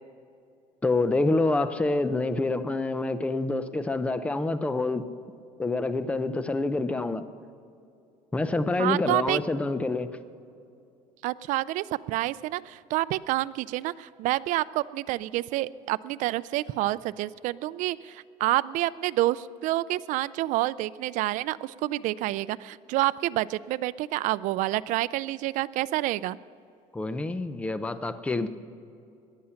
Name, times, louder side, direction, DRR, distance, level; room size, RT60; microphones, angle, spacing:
voice 1, 0.8-5.0 5.6-7.2 8.3-10.1 26.9-28.5, left 2 dB, 10° left, 12 dB, 0.6 m, -27 dB
voice 2, 8.8-9.4 11.2-26.4, right 17 dB, 70° right, 17 dB, 0.4 m, -28 dB
18.5 x 11.5 x 5.8 m, 2.5 s
cardioid pair, 145°, 14 cm